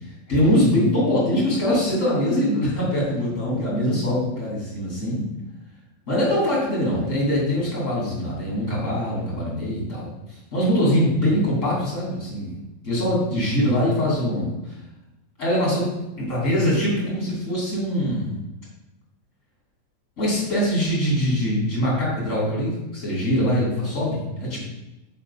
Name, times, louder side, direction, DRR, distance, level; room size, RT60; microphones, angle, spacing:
voice 1, 0.3-5.2 6.1-10.1 10.5-12.5 12.8-14.5 15.4-15.9 16.2-18.4 20.2-24.6, equal, 25° left, -5 dB, 2.1 m, -23 dB
4.9 x 4.4 x 5.5 m, 0.98 s
omnidirectional pair, 4.2 m